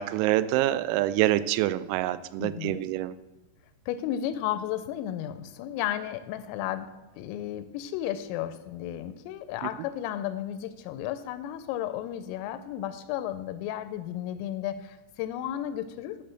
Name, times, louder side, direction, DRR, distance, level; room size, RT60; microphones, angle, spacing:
voice 1, 0.0-3.1, right 14 dB, 85° right, 14 dB, 3.2 m, -26 dB
voice 2, 2.4-2.8 3.9-16.2, left 11 dB, 85° left, 12 dB, 3.1 m, -33 dB
10.0 x 6.8 x 7.6 m, 1.0 s
omnidirectional pair, 6.0 m